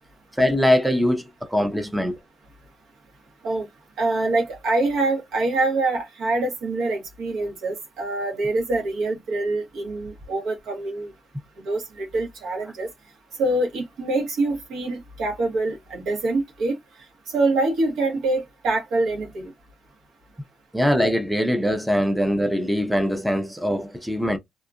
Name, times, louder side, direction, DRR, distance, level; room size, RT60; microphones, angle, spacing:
voice 1, 0.3-2.2 20.7-24.4, equal, 5° right, 0.6 m, -22 dB
voice 2, 4.0-11.1 11.6-12.9 13.4-16.7 17.3-19.5, right 2 dB, 80° right, 1.2 m, -25 dB
2.8 x 2.4 x 2.5 m
cardioid pair, 90°, 0 cm